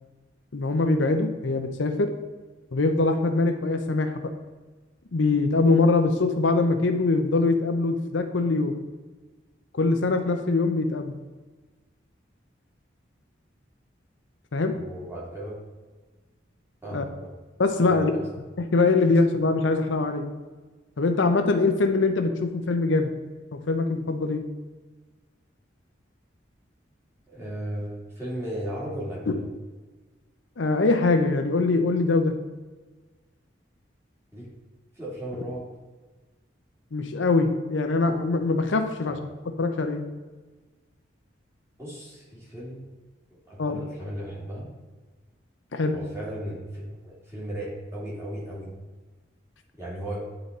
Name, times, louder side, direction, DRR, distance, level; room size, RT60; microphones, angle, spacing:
voice 1, 0.5-2.1 2.7-4.3 5.1-8.7 9.7-11.2 14.5-14.7 16.9-17.0 17.6-18.1 18.6-20.2 21.0-23.1 23.5-24.4 29.3-29.4 30.6-32.3 36.9-39.2 39.6-40.0 43.6-43.8 45.7-46.0, left 3 dB, 80° left, 6 dB, 0.6 m, -23 dB
voice 2, 14.7-15.5 16.8-17.3 17.9-18.2 27.3-29.4 34.3-34.5 35.0-35.7 39.1-39.2 41.8-42.8 43.3-44.7 45.9-48.7 49.8-50.2, right 1 dB, 15° right, -7 dB, 2.5 m, -36 dB
9.7 x 3.9 x 4.0 m, 1.3 s
head